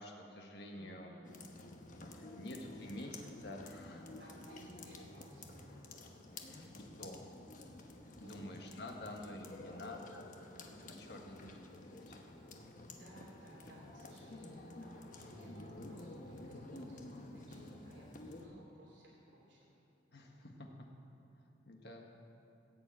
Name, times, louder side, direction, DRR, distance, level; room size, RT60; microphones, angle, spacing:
voice 1, 0.0-1.1 2.1-4.3 6.3-7.3 8.2-10.3 10.6-12.2 20.1-20.7 21.6-22.1, left 1 dB, 60° left, 1 dB, 1.6 m, -49 dB
voice 2, 0.7-1.8 4.0-5.8 8.2-8.5 12.9-19.7, right 1 dB, 75° right, -4 dB, 2.9 m, -59 dB
sound 1, 1.2-18.5, left 2 dB, 45° left, 1.1 m, -51 dB
15.5 x 6.9 x 8.4 m, 2.7 s
head